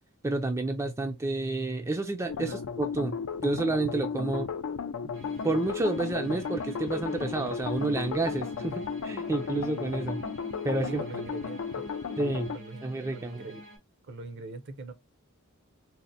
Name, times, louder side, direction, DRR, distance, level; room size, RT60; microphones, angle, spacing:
voice 1, 0.2-4.5 5.4-10.2 10.6-11.0 12.2-12.5 12.8-13.4, right 2 dB, 15° right, 0.3 m, -30 dB
sound 1, 2.3-12.6, left 6 dB, 70° left, 0.4 m, -35 dB
sound 2, 5.1-13.8, equal, 80° right, 1.7 m, -47 dB
voice 2, 10.8-11.8 12.5-12.9 13.1-13.6 14.1-14.9, right 3 dB, 55° right, 0.6 m, -41 dB
4.1 x 2.1 x 2.5 m
head